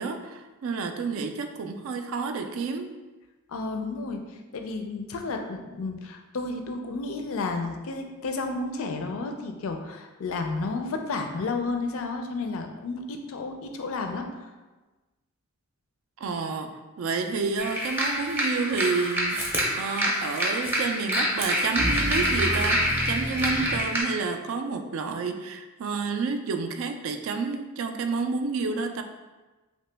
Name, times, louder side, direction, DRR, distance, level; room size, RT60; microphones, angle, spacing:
voice 1, 0.0-2.9 16.2-29.0, right 4 dB, 65° right, 6 dB, 0.3 m, -30 dB
voice 2, 3.5-4.2 4.5-14.3, left 3 dB, 65° left, 4 dB, 0.4 m, -32 dB
sound 1, 17.6-24.0, equal, 10° right, 0.6 m, -26 dB
3.0 x 2.9 x 3.3 m, 1.2 s
head